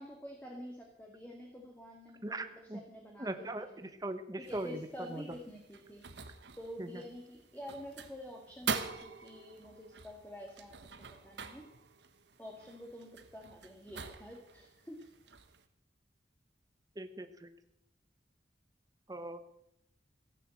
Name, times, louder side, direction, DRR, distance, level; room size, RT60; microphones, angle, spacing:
voice 1, 0.0-3.9 4.4-6.0 6.6-10.8 11.1-11.7 12.4-15.1, equal, 10° left, 0 dB, 1.9 m, -48 dB
voice 2, 2.2-2.8 3.2-3.7 4.0-5.4 6.8-7.0 17.0-17.5 19.1-19.4, right 1 dB, 20° right, 9 dB, 1.1 m, -40 dB
sound 1, 4.4-15.7, right 5 dB, 75° right, 1.2 m, -45 dB
15.5 x 9.1 x 7.8 m, 0.80 s
head